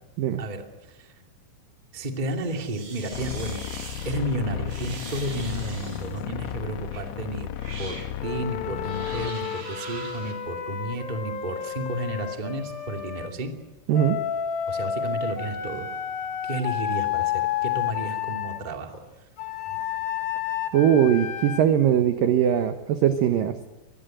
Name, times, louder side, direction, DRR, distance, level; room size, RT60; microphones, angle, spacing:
voice 1, 0.4-1.1 1.9-3.6 4.0-7.5 7.8-13.5 14.7-15.9 16.4-19.0 19.7-19.8, right 1 dB, 20° right, 3 dB, 1.4 m, -32 dB
sound 1, 2.4-4.2 4.7-6.2 6.9-7.1 7.5-8.1 8.8-10.3, right 4 dB, 55° right, 5.6 m, -42 dB
sound 2, 3.1-9.3, left 10 dB, 80° left, 3.3 m, -34 dB
Wind instrument woodwind instrument, 8.2-13.3 13.9-18.6 19.4-21.6, left 9 dB, 60° left, 3.0 m, -31 dB
voice 2, 20.7-23.7, right 9 dB, 75° right, 8 dB, 2.0 m, -21 dB
25.5 x 20.5 x 7.9 m, 1.1 s
omnidirectional pair, 5.5 m